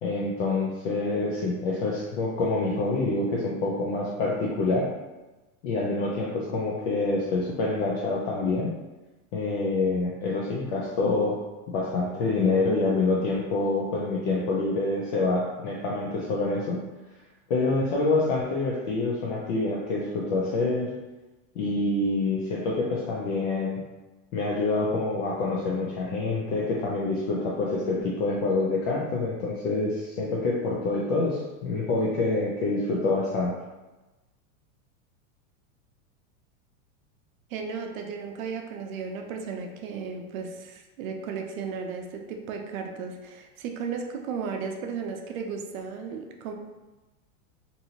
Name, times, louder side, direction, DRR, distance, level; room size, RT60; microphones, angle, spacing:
voice 1, 0.0-4.9 5.6-8.7 9.3-11.4 11.7-16.8 17.5-20.9 21.6-23.8 24.3-33.5, left 3 dB, 50° left, -4 dB, 0.6 m, -26 dB
voice 2, 37.5-46.5, right 5 dB, 70° right, 4 dB, 0.6 m, -35 dB
2.7 x 2.6 x 2.8 m, 1.1 s
supercardioid pair, 140°, 42 cm